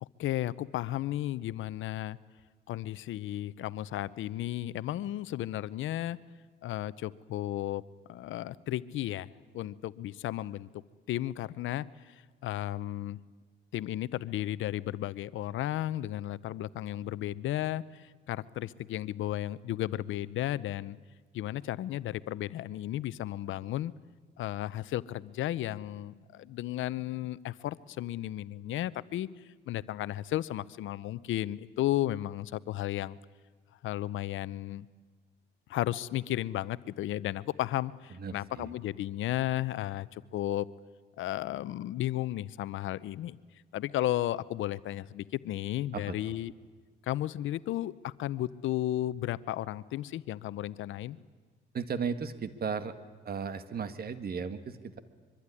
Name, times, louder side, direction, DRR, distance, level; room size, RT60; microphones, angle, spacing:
voice 1, 0.0-2.2 2.7-6.2 6.6-7.8 8.1-10.7 11.1-12.1 12.4-13.2 13.7-21.0 21.3-23.9 24.4-29.3 29.7-33.2 33.8-34.9 35.7-40.7 41.2-43.4 43.7-46.5 47.1-51.2, left 14 dB, 80° left, 18 dB, 0.7 m, -34 dB
voice 2, 38.1-38.7 45.9-46.4 51.7-52.9 53.3-55.0, right 6 dB, 50° right, 11 dB, 1.8 m, -36 dB
24.0 x 23.5 x 9.9 m, 1.4 s
cardioid pair, 90°, 20 cm